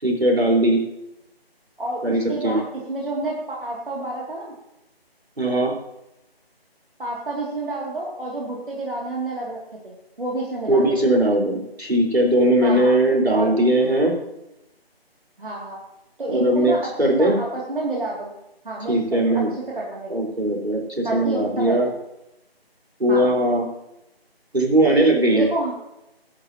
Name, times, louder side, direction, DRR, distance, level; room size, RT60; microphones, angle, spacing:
voice 1, 0.0-0.8 2.0-2.6 5.4-5.7 10.7-14.2 16.3-17.4 18.9-19.5 20.1-21.9 23.0-23.7 24.5-25.5, right 1 dB, 80° right, -1 dB, 4.6 m, -19 dB
voice 2, 1.8-4.5 7.0-9.6 9.8-11.0 12.6-12.9 13.3-13.5 15.4-15.8 16.2-16.8 17.0-18.3 18.6-20.1 21.0-21.8 23.1-23.3 25.3-25.7, right 2 dB, 55° right, -4 dB, 2.7 m, -29 dB
15.5 x 11.5 x 2.9 m, 0.88 s
figure-of-eight pair, 160°, 31 cm